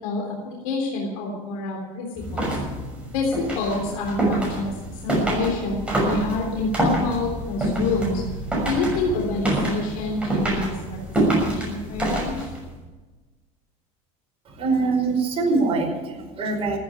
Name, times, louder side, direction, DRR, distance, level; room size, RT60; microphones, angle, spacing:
voice 1, 0.0-2.5 3.1-8.2 8.6-11.0 11.4-12.4, left 3 dB, 85° left, -1 dB, 3.6 m, -27 dB
sound 1, 2.2-12.7, right 1 dB, 5° right, 6.4 m, -26 dB
voice 2, 14.4-16.8, right 3 dB, 35° right, 0 dB, 5.1 m, -23 dB
15.0 x 9.3 x 9.0 m, 1.2 s
supercardioid pair, 125°, 17 cm